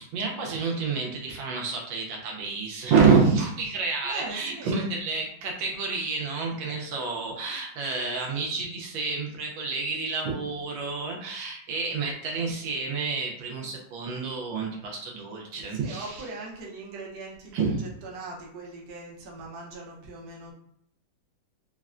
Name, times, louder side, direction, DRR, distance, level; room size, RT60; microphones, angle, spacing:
voice 1, 0.0-16.2 17.5-17.9, right 5 dB, 80° right, 0 dB, 1.3 m, -28 dB
voice 2, 4.0-4.9 10.3-10.5 15.7-20.5, right 3 dB, 60° right, -2 dB, 1.1 m, -40 dB
4.1 x 2.1 x 2.4 m, 0.68 s
omnidirectional pair, 2.1 m